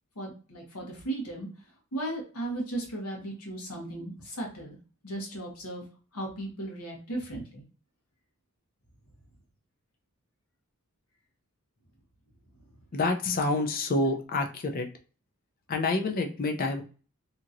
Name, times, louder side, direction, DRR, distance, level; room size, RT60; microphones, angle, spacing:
voice 1, 0.2-1.5 1.9-4.8 5.0-5.8 6.1-7.6, right 1 dB, 85° left, -1 dB, 1.2 m, -36 dB
voice 2, 12.9-14.9 15.7-16.8, left 2 dB, 40° left, 4 dB, 0.4 m, -28 dB
2.8 x 2.8 x 2.4 m, 0.36 s
head